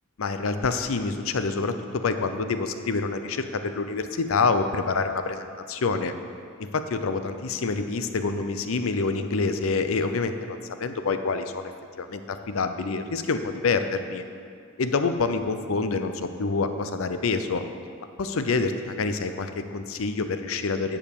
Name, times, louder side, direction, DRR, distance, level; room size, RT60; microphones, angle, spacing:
voice 1, 0.2-6.1 6.6-11.7 12.0-14.2 14.8-17.7 18.2-21.0, left 4 dB, 80° left, 9 dB, 0.6 m, -27 dB
9.2 x 5.1 x 7.0 m, 2.2 s
head